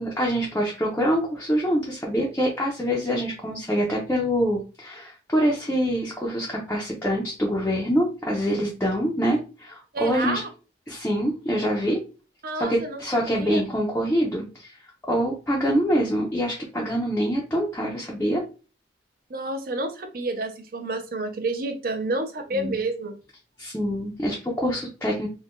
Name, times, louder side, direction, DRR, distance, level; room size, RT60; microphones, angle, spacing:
voice 1, 0.0-10.4 10.9-12.0 12.6-14.8 15.1-18.4 22.5-22.8 23.6-25.3, equal, 10° left, -3 dB, 0.5 m, -25 dB
voice 2, 9.9-10.5 12.4-13.0 13.3-13.6 19.3-23.2, right 2 dB, 50° right, 6 dB, 0.5 m, -29 dB
2.5 x 2.2 x 3.5 m, 0.33 s
head